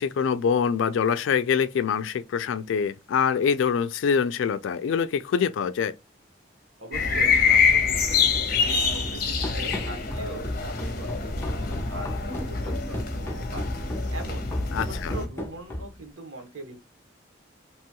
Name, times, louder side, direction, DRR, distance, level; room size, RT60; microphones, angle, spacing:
voice 1, 0.0-6.0 14.7-15.1, left 6 dB, 80° left, 0.3 m, -25 dB
voice 2, 6.8-13.8 14.1-14.5 14.8-16.8, right 2 dB, 90° right, 1.1 m, -42 dB
sound 1, 6.9-15.3, left 5 dB, 50° left, 0.7 m, -25 dB
Run, 9.4-16.1, left 1 dB, 15° left, 0.5 m, -35 dB
2.9 x 2.3 x 2.8 m
head